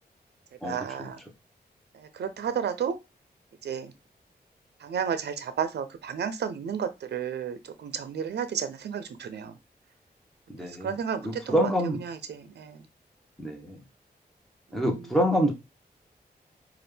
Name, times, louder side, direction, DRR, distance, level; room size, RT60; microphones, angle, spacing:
voice 1, 0.6-1.2 1.9-3.0 3.6-3.9 4.8-9.6 10.6-11.7 12.0-12.9 14.7-15.0, right 7 dB, 85° right, 12 dB, 0.5 m, -32 dB
voice 2, 10.5-10.9 11.2-12.0 13.4-13.8 14.7-15.5, equal, ahead, 1 dB, 1.2 m, -26 dB
4.2 x 2.4 x 3.3 m, 0.23 s
cardioid pair, 75°, 17 cm